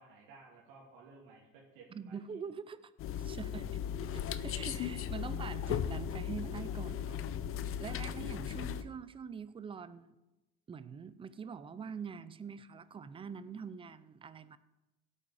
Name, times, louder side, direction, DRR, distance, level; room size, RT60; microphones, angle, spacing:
voice 1, 0.0-2.2 7.9-8.3, right 4 dB, 80° right, -5 dB, 3.1 m, -57 dB
voice 2, 1.9-2.9 3.2-3.7 4.1-7.2 7.8-10.2 10.7-14.6, right 6 dB, 15° right, 15 dB, 0.5 m, -44 dB
sound 1, 3.0-8.8, left 9 dB, 40° left, 0.7 m, -37 dB
16.5 x 8.6 x 5.1 m, 1.0 s
cardioid pair, 135°, 33 cm